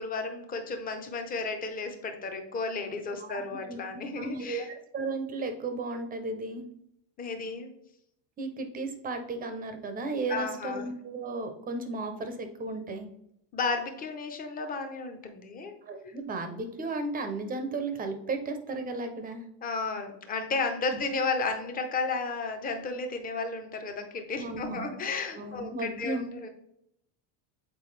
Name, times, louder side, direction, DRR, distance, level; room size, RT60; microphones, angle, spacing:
voice 1, 0.0-4.7 7.2-7.7 10.3-10.8 13.5-15.7 16.1-16.2 19.6-26.5, left 4 dB, 20° left, 6 dB, 0.7 m, -33 dB
voice 2, 3.2-3.8 4.2-6.6 8.4-13.1 15.9-19.4 24.4-24.9 25.4-26.3, right 3 dB, 20° right, 7 dB, 0.6 m, -34 dB
7.6 x 4.6 x 3.2 m, 0.75 s
cardioid pair, 175°, 45 cm